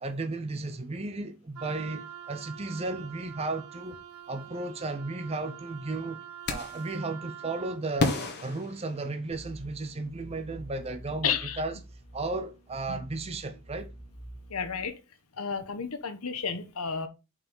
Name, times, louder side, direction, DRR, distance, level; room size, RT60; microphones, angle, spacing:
voice 1, 0.0-4.0 4.3-6.2 6.5-11.8 12.1-13.9, right 2 dB, 25° right, 0.6 m, -34 dB
Wind instrument woodwind instrument, 1.6-7.8, right 9 dB, 75° right, 0.9 m, -45 dB
sound 1, 6.5-6.9 8.0-9.5, left 2 dB, 50° left, 1.6 m, -31 dB
sound 2, 9.3-14.9, right 1 dB, 25° left, 2.1 m, -47 dB
voice 2, 11.2-11.6 12.9-13.0 14.5-15.0 15.4-17.1, left 6 dB, 75° left, 1.1 m, -32 dB
5.5 x 4.8 x 5.5 m
head